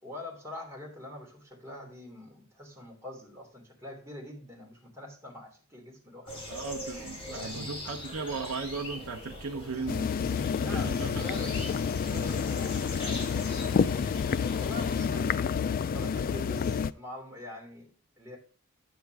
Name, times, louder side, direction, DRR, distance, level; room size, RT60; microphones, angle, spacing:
voice 1, 0.0-6.4 6.9-7.0 7.3-7.8 10.5-14.0 14.6-15.6 15.9-18.4, left 1 dB, 15° right, -2 dB, 3.0 m, -44 dB
sound 1, 6.3-14.9, left 1 dB, 25° left, 4.2 m, -42 dB
voice 2, 6.5-10.1 10.7-11.3 12.6-12.7, right 4 dB, 75° right, 1 dB, 0.8 m, -37 dB
sound 2, 9.9-16.9, left 6 dB, 40° left, 0.3 m, -29 dB
9.3 x 7.8 x 3.5 m, 0.41 s
head